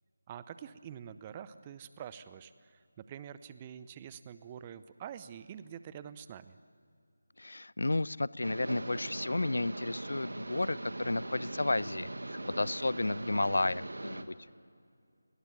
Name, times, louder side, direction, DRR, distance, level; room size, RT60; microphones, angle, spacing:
voice 1, 0.3-6.6, right 9 dB, 20° right, 14 dB, 0.7 m, -46 dB
voice 2, 7.4-14.3, left 2 dB, 65° left, 22 dB, 0.6 m, -32 dB
sound 1, 8.4-14.2, right 2 dB, 65° right, 2.0 m, -41 dB
29.5 x 20.5 x 9.3 m, 2.3 s
figure-of-eight pair, 160°, 0 cm